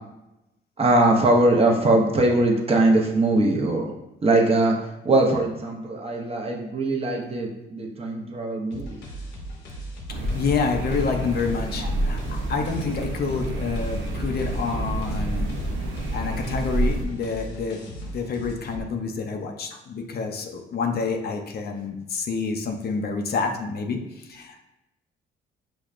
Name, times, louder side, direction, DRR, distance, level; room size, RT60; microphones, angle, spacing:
voice 1, 0.8-3.9 4.2-4.8 5.0-9.0, right 2 dB, 30° right, 0 dB, 0.7 m, -21 dB
sound 1, 8.7-18.8, right 1 dB, 85° left, 1.0 m, -38 dB
voice 2, 10.1-15.5 15.8-24.6, left 5 dB, 55° left, 4 dB, 0.5 m, -28 dB
sound 2, 10.1-17.0, right 1 dB, 85° right, 0.6 m, -28 dB
5.9 x 2.2 x 2.4 m, 0.91 s
cardioid pair, 90°, 20 cm